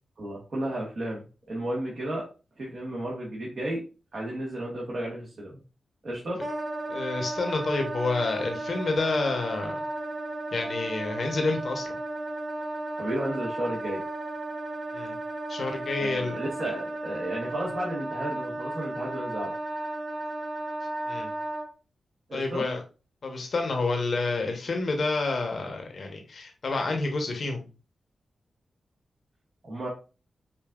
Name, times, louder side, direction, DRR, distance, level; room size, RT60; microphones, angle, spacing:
voice 1, 0.2-2.2 2.6-3.8 4.1-5.6 6.0-6.4 13.0-14.0 16.0-19.5 22.3-22.6 29.6-29.9, right 1 dB, 60° right, -4 dB, 1.4 m, -33 dB
Wind instrument woodwind instrument, 6.4-21.7, right 2 dB, 25° right, 0.8 m, -34 dB
voice 2, 6.9-9.8 10.5-11.9 14.9-15.1 15.5-16.4 21.1-21.3 22.3-22.8 23.2-27.6, left 3 dB, 65° left, 3 dB, 0.9 m, -29 dB
5.2 x 2.6 x 2.3 m, 0.33 s
cardioid pair, 50°, 0 cm